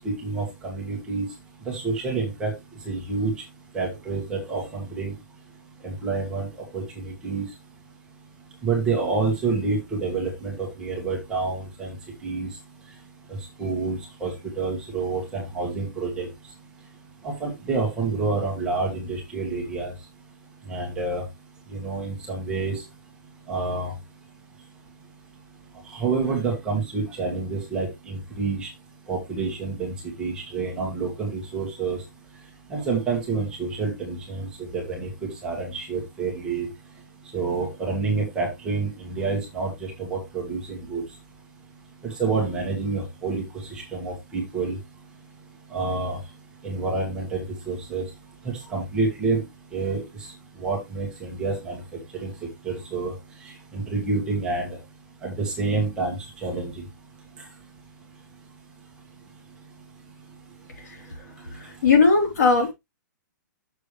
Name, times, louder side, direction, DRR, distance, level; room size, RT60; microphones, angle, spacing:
voice 1, 0.2-1.2 1.7-2.5 2.8-3.3 3.7-5.1 5.8-6.5 6.7-7.4 8.6-11.9 12.2-12.5 13.6-16.3 17.2-19.9 20.7-21.2 21.7-22.8 23.5-23.9 25.9-28.7 29.1-29.9 30.2-32.0 32.7-34.5 34.7-36.7 37.3-39.7 40.0-41.0 42.0-43.4 43.7-44.8 45.7-46.2 46.6-48.0 48.4-49.4 49.7-50.0 50.6-51.8 52.1-52.3 52.6-53.1 53.7-54.7 55.2-56.2 56.4-56.7, right 4 dB, 10° right, 1.6 m, -28 dB
voice 2, 61.5-62.7, left 4 dB, 60° left, 3.5 m, -19 dB
6.8 x 6.7 x 3.3 m
hypercardioid pair, 175°, 10 cm